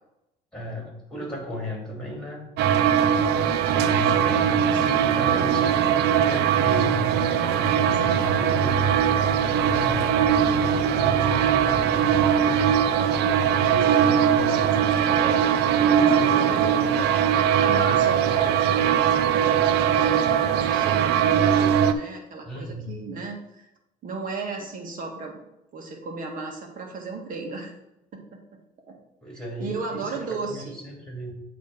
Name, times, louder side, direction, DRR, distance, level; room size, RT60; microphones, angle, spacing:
voice 1, 0.5-3.1 3.7-6.0 6.3-8.8 9.6-12.6 13.4-15.0 15.6-16.9 17.7-18.4 18.8-18.9 22.4-23.1 29.2-31.3, left 1 dB, 5° left, -1 dB, 2.8 m, -36 dB
sound 1, 2.6-21.9, right 8 dB, 80° right, 0.5 m, -21 dB
voice 2, 8.2-8.8 13.0-13.5 15.8-16.9 17.5-18.5 19.3-23.7 24.0-25.4 25.7-27.7 28.1-28.4 28.9-29.0 29.6-30.8, right 3 dB, 55° right, 2 dB, 1.8 m, -35 dB
sound 2, 8.7-13.7, left 3 dB, 50° left, 0.8 m, -40 dB
8.2 x 3.4 x 6.5 m, 0.89 s
cardioid pair, 110°, 17 cm